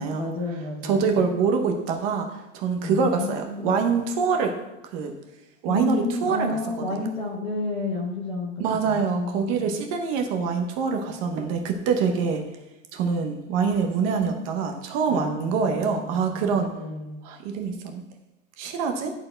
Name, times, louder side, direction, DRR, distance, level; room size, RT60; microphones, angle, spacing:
voice 1, 0.0-1.1 2.8-3.9 5.7-9.8 15.1-17.2, left 2 dB, 15° left, -1 dB, 0.5 m, -31 dB
voice 2, 0.8-4.5 4.9-5.1 5.6-7.1 8.6-12.4 12.9-16.7 17.2-18.0 18.6-19.1, right 5 dB, 30° right, 4 dB, 0.7 m, -25 dB
10.0 x 4.5 x 4.3 m, 0.98 s
supercardioid pair, 170°, 39 cm